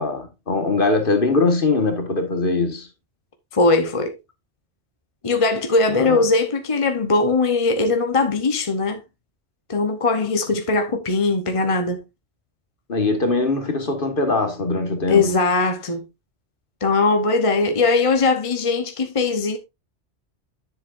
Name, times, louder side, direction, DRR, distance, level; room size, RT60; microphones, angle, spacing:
voice 1, 0.0-2.9 5.9-6.2 12.9-15.3, left 3 dB, 50° left, 1.8 m, -21 dB
voice 2, 3.5-4.1 5.2-9.0 9.7-12.0 15.1-16.1 16.8-19.6, left 3 dB, 30° left, 0.9 m, -20 dB
10.0 x 7.6 x 2.5 m
omnidirectional pair, 1.2 m